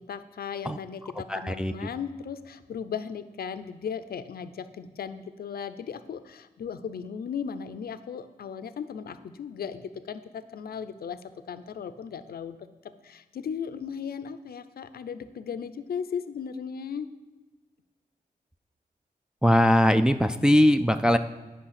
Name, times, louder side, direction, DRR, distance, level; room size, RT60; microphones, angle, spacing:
voice 1, 0.0-11.2 11.5-12.6 13.0-17.1, left 7 dB, 85° left, 12 dB, 0.5 m, -36 dB
voice 2, 1.3-1.7 19.4-21.2, equal, 5° right, 8 dB, 0.3 m, -20 dB
8.8 x 5.4 x 5.8 m, 1.2 s
cardioid pair, 65°, 15 cm